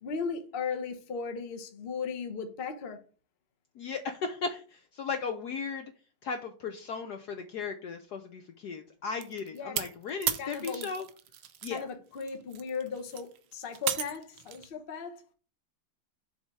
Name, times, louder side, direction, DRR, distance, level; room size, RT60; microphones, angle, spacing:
voice 1, 0.0-3.0 9.5-9.8 10.4-10.9 11.7-15.2, left 5 dB, 40° left, 0.8 m, -36 dB
voice 2, 3.8-5.9 6.2-11.1 11.6-11.9, left 5 dB, 65° left, 1.0 m, -36 dB
sound 1, 9.2-11.8 12.1-14.7, right 11 dB, 75° right, 1.4 m, -35 dB
7.3 x 3.4 x 6.1 m
omnidirectional pair, 2.2 m